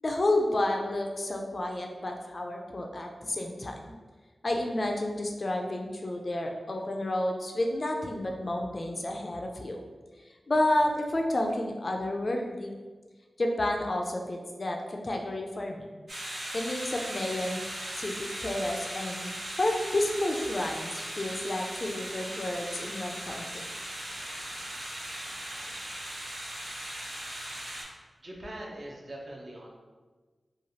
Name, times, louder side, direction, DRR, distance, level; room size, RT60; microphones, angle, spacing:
voice 1, 0.0-3.9 4.4-9.8 10.5-12.7 13.4-15.9 16.5-17.6 18.0-23.6, left 1 dB, 45° left, 2 dB, 0.3 m, -30 dB
sound 1, 16.1-27.8, right 1 dB, 85° right, 0.7 m, -38 dB
voice 2, 28.2-29.8, right 1 dB, 50° right, -2 dB, 0.6 m, -42 dB
3.0 x 2.3 x 2.7 m, 1.4 s
wide cardioid pair, 85°, 0 cm